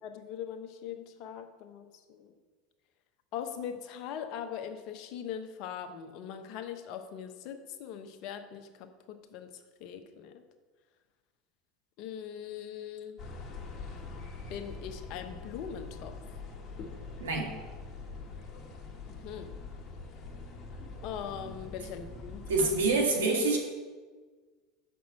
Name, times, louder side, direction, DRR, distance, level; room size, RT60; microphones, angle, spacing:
voice 1, 0.0-2.3 3.3-10.4 12.0-13.2 14.5-16.1 19.1-19.6 21.0-22.7, left 8 dB, 60° left, 7 dB, 1.0 m, -41 dB
sound 1, 13.2-23.0, left 3 dB, 40° left, 1.7 m, -44 dB
voice 2, 17.2-17.5 22.5-23.6, right 3 dB, 85° right, 1 dB, 1.9 m, -26 dB
6.3 x 6.0 x 7.2 m, 1.4 s
hypercardioid pair, 90°, 0 cm